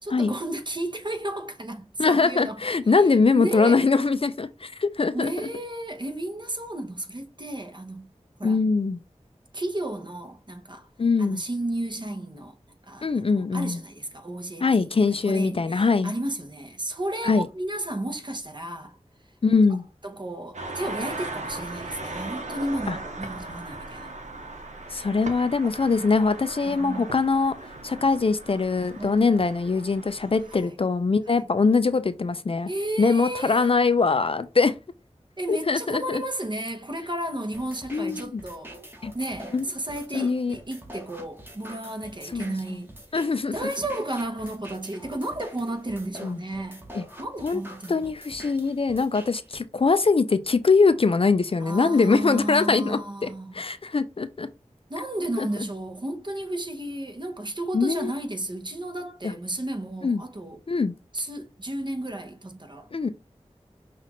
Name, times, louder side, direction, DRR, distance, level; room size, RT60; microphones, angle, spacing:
voice 1, 0.0-2.6 2.9-3.9 5.1-8.1 8.4-8.7 9.5-10.9 11.2-12.6 12.8-19.0 20.0-24.1 26.6-27.1 28.9-29.3 30.5-30.8 31.3-31.5 32.6-33.7 35.4-38.8 39.1-42.9 43.5-46.9 47.2-48.1 51.6-53.7 54.9-60.6 61.1-62.9, right 1 dB, 40° right, 0.9 m, -33 dB
voice 2, 2.0-5.3 8.4-9.0 11.0-11.4 13.0-13.8 14.6-16.1 17.2-17.5 19.4-19.8 22.9-23.0 24.9-27.5 27.8-32.7 33.0-34.8 35.5-36.2 37.9-38.4 39.0-39.1 39.5-39.6 40.1-40.6 42.3-42.5 43.1-43.7 46.2-46.4 46.9-47.0 47.4-47.6 47.9-54.5 55.4-55.5 57.7-58.1 60.0-60.2 60.7-60.9 62.9-63.1, left 4 dB, 50° left, 0.4 m, -22 dB
sound 1, 20.5-30.6, right 2 dB, 90° right, 0.8 m, -38 dB
sound 2, 37.5-49.5, equal, 20° right, 1.2 m, -45 dB
5.8 x 2.4 x 3.0 m
wide cardioid pair, 60°, 12 cm